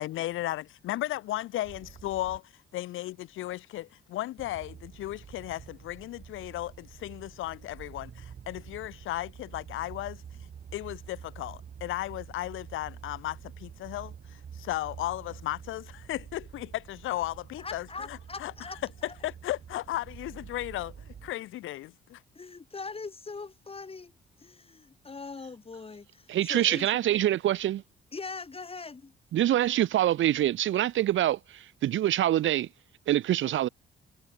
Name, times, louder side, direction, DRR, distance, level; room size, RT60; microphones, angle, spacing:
voice 1, 0.0-18.5 19.0-22.2, left 15 dB, 85° left, 2.3 m, -35 dB
sound 1, 1.6-2.4 4.4-21.3, right 7 dB, 50° right, 4.5 m, -47 dB
voice 2, 17.6-19.1 22.3-24.1 24.4-27.0 28.1-29.1, left 4 dB, 30° left, 6.0 m, -41 dB
voice 3, 26.3-27.8 29.3-32.7 33.1-33.7, right 12 dB, 75° right, 2.2 m, -25 dB
cardioid pair, 90°, 20 cm